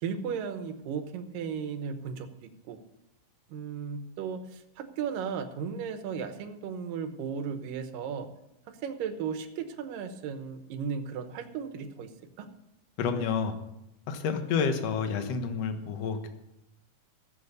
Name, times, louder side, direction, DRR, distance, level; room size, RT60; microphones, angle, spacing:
voice 1, 0.0-2.8 3.5-8.3 8.8-12.1 12.4-12.5, right 6 dB, 75° right, 8 dB, 2.6 m, -35 dB
voice 2, 13.0-13.5 14.1-16.3, left 6 dB, 60° left, 7 dB, 2.0 m, -29 dB
15.0 x 7.7 x 6.8 m, 0.86 s
omnidirectional pair, 4.1 m